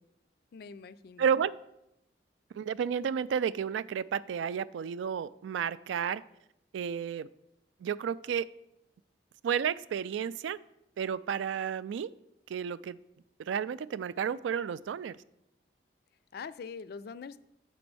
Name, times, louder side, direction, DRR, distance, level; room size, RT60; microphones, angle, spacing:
voice 1, 0.5-1.3 16.3-17.4, left 5 dB, 55° left, 15 dB, 0.3 m, -43 dB
voice 2, 1.2-1.5 2.5-6.2 6.7-7.3 7.8-8.5 9.4-10.6 11.0-12.1 12.5-13.0 13.4-15.2, right 7 dB, 85° right, 17 dB, 0.3 m, -31 dB
6.8 x 5.2 x 6.1 m, 0.82 s
head